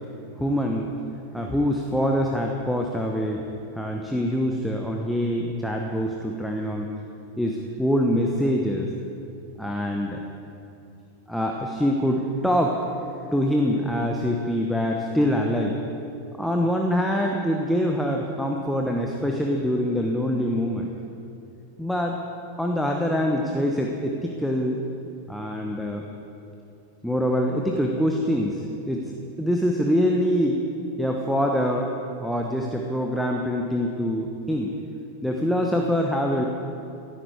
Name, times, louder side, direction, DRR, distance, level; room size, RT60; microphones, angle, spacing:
voice 1, 0.4-0.9 1.3-3.4 3.8-6.9 7.4-8.9 9.6-10.2 11.3-12.8 13.3-15.8 16.4-20.9 21.8-22.1 22.6-24.8 25.3-26.0 27.0-30.6 31.0-31.9 32.2-34.7 35.2-36.5, equal, ahead, 0 dB, 1.1 m, -24 dB
16.5 x 13.0 x 4.8 m, 2.7 s
figure-of-eight pair, 90°, 0 cm